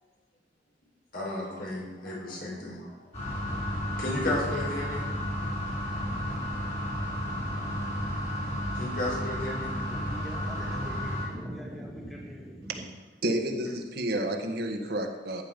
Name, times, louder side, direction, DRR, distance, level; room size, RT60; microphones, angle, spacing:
voice 1, 1.1-3.0 4.0-5.1 8.7-9.7, left 1 dB, 55° left, -3 dB, 5.3 m, -33 dB
sound 1, 3.1-11.3, equal, 40° left, 5.2 m, -32 dB
voice 2, 9.7-12.8, equal, ahead, -3 dB, 2.4 m, -41 dB
voice 3, 13.2-15.4, right 1 dB, 60° right, 3 dB, 1.6 m, -30 dB
14.5 x 10.0 x 5.3 m, 1.2 s
head